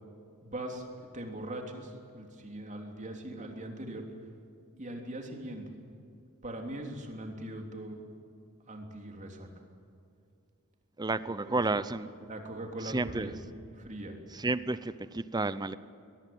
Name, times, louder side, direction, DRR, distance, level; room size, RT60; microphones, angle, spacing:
voice 1, 0.4-4.0 4.8-5.6 6.4-8.0 8.7-9.5 11.3-11.6 12.3-13.4 13.7-14.2, right 1 dB, 35° right, 3 dB, 3.2 m, -41 dB
voice 2, 11.0-12.1 12.8-13.4 14.3-15.7, right 3 dB, 20° right, 14 dB, 0.7 m, -31 dB
22.5 x 19.5 x 9.3 m, 2.4 s
head